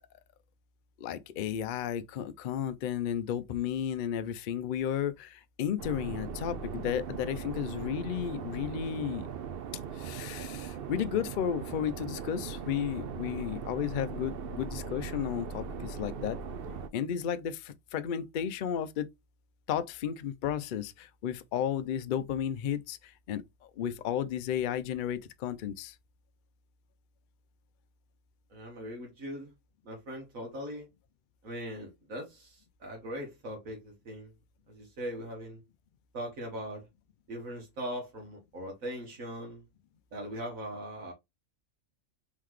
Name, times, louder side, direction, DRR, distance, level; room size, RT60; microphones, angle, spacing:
voice 1, 1.0-9.3 10.0-16.4 16.9-19.1 19.7-23.4 23.8-25.9, left 9 dB, 75° left, 0.4 m, -33 dB
sound 1, 5.8-16.9, right 6 dB, 60° right, 0.7 m, -39 dB
voice 2, 28.5-29.5 29.8-30.9 31.4-34.3 34.7-35.6 36.1-36.9 37.3-39.6 40.1-41.1, equal, 75° right, 1.6 m, -40 dB
3.8 x 3.6 x 3.1 m
omnidirectional pair, 1.4 m